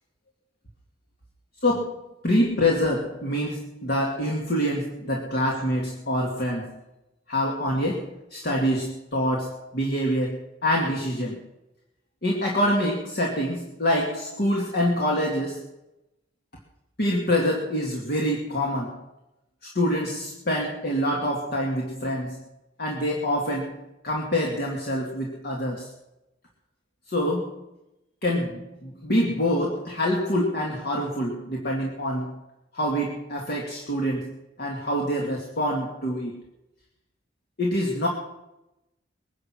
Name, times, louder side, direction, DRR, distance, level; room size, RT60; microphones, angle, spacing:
voice 1, 1.6-6.8 7.3-11.4 12.2-15.7 17.0-19.0 19.7-22.4 22.8-25.9 27.1-27.6 28.2-32.4 32.7-34.3 34.6-36.4 37.6-38.1, equal, 55° left, -1 dB, 2.3 m, -26 dB
21.5 x 10.5 x 6.3 m, 0.93 s
head